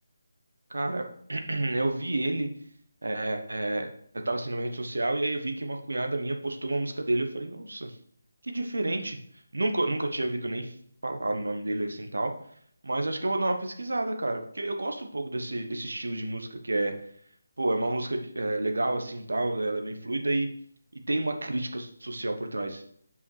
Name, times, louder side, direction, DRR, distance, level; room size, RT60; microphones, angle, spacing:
voice 1, 0.7-2.5 3.0-3.9 4.2-8.0 8.4-9.2 9.5-10.7 11.0-12.3 12.8-16.9 17.6-20.5 21.1-22.8, right 2 dB, 75° right, 5 dB, 1.1 m, -30 dB
5.6 x 5.0 x 4.8 m, 0.62 s
figure-of-eight pair, 155°, 0 cm